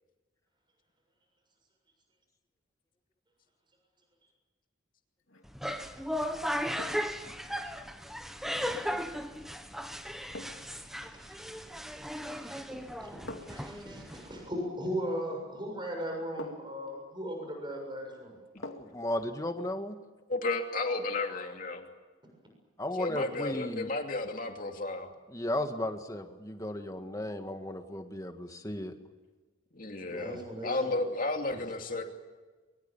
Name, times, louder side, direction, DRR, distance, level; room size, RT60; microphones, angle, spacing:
sound 1, 5.2-5.5 6.8-7.2 9.3-9.5 10.3-10.8 12.1-12.5 13.3-13.7 15.4-15.5 16.4-16.8 18.6-19.1 19.4-19.5, left 2 dB, 75° left, 2.6 m, -45 dB
sound 2, 5.4-14.5, equal, ahead, 1.3 m, -36 dB
voice 1, 11.0-11.4 11.9-13.2 13.5-18.4 30.1-31.0 31.5-31.6, equal, 25° right, 2 dB, 7.0 m, -38 dB
voice 2, 18.6-20.0 22.8-23.9 25.3-28.9, left 1 dB, 15° left, 6 dB, 1.7 m, -35 dB
voice 3, 20.3-21.9 23.0-25.1 29.7-32.0, left 2 dB, 40° left, 3 dB, 2.8 m, -33 dB
24.0 x 23.5 x 7.2 m, 1.3 s
head